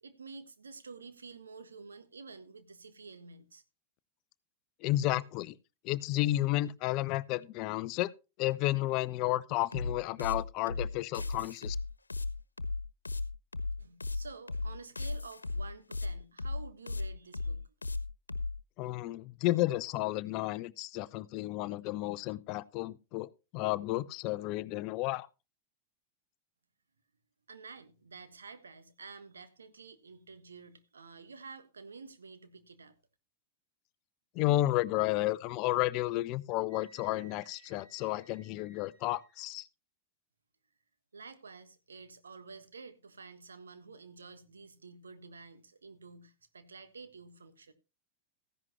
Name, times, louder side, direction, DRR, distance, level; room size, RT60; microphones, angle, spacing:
voice 1, 0.0-3.6 13.8-17.7 27.5-32.9 41.1-47.7, right 4 dB, 75° right, 1.4 m, -50 dB
voice 2, 4.8-5.6 5.8-8.1 8.4-11.8 18.8-25.3 34.3-39.7, left 16 dB, 40° left, 0.6 m, -32 dB
sound 1, 9.7-18.5, left 3 dB, 80° left, 1.2 m, -35 dB
Wind instrument woodwind instrument, 36.7-39.5, right 5 dB, 50° right, 5.2 m, -61 dB
15.0 x 11.0 x 3.0 m
figure-of-eight pair, 90°, 0 cm